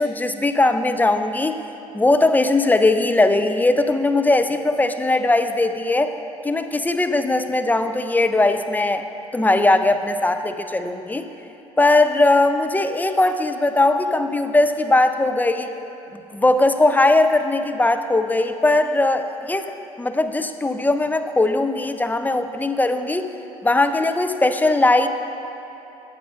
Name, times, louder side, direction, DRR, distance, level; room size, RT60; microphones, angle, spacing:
voice 1, 0.0-1.6 1.9-6.1 6.4-9.0 9.3-11.3 11.8-15.7 16.3-19.7 20.0-23.3 23.6-25.1, left 2 dB, 10° left, 8 dB, 0.5 m, -19 dB
15.0 x 8.6 x 2.5 m, 2.9 s
hypercardioid pair, 60°, 16 cm